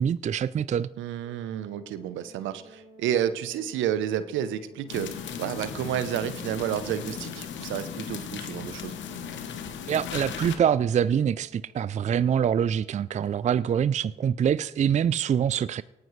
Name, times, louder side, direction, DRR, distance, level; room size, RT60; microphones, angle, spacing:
voice 1, 0.0-0.9 9.9-15.8, right 8 dB, 35° right, 0.4 m, -25 dB
voice 2, 1.0-5.1 5.4-8.9, right 10 dB, 75° right, 0.8 m, -30 dB
Organ, 1.2-12.1, right 2 dB, 40° left, 3.7 m, -54 dB
sound 1, 4.9-10.6, left 7 dB, 70° left, 1.1 m, -37 dB
18.0 x 9.3 x 3.2 m
hypercardioid pair, 45°, 20 cm